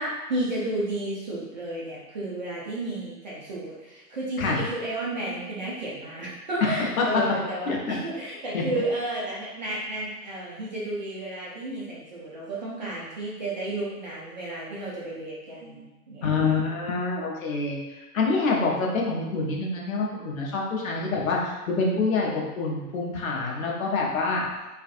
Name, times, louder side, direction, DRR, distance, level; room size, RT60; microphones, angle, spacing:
voice 1, 0.0-16.6, right 1 dB, 30° right, -6 dB, 0.4 m, -32 dB
voice 2, 6.6-7.3 7.7-8.0 8.5-8.8 16.2-24.4, left 3 dB, 60° left, -2 dB, 0.8 m, -26 dB
2.5 x 2.4 x 2.5 m, 1.1 s
figure-of-eight pair, 120°, 47 cm